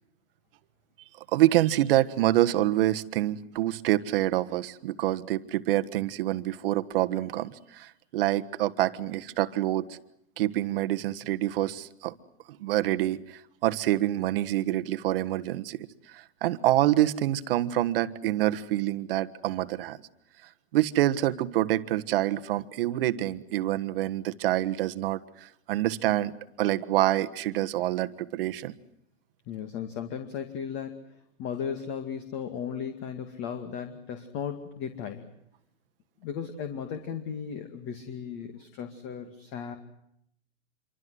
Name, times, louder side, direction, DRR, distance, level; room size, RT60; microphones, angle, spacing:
voice 1, 1.3-10.0 10.4-12.1 12.5-20.0 20.7-28.7, right 14 dB, 45° right, 12 dB, 1.5 m, -26 dB
voice 2, 29.5-31.0 31.4-35.3 36.2-39.8, left 7 dB, 30° left, 7 dB, 2.3 m, -36 dB
27.0 x 24.5 x 7.9 m, 0.74 s
hypercardioid pair, 150°, 40 cm